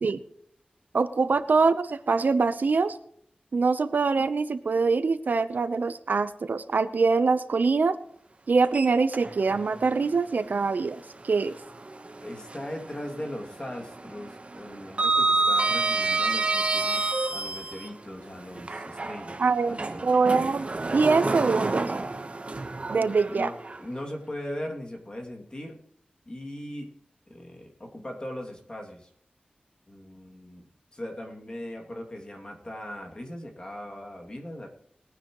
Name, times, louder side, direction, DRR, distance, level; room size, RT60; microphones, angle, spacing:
voice 1, 0.9-3.0 3.5-8.0 8.5-11.5 19.4-19.8 20.0-21.9 22.9-23.5, right 4 dB, 75° right, 12 dB, 0.8 m, -24 dB
Sliding door, 8.6-9.6 10.0-10.1 11.8-12.9 13.2-13.5 13.8-17.9 18.6-23.8, right 3 dB, 45° right, 1.2 m, -28 dB
voice 2, 12.2-20.1 23.0-25.8 26.2-26.9 27.3-29.1 29.9-34.7, left 1 dB, 30° left, 1 dB, 2.6 m, -39 dB
20.5 x 9.8 x 3.1 m, 0.68 s
wide cardioid pair, 95°, 3 cm